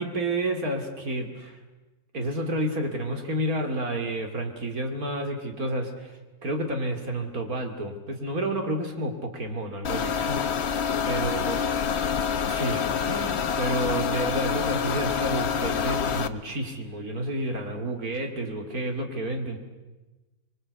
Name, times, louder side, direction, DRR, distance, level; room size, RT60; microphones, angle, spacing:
voice 1, 0.0-1.6 2.1-10.7 11.0-11.6 12.4-19.6, right 1 dB, 45° right, 5 dB, 3.1 m, -30 dB
sound 1, 9.8-16.3, left 7 dB, 45° left, 0.9 m, -27 dB
25.5 x 22.5 x 8.3 m, 1.2 s
omnidirectional pair, 2.1 m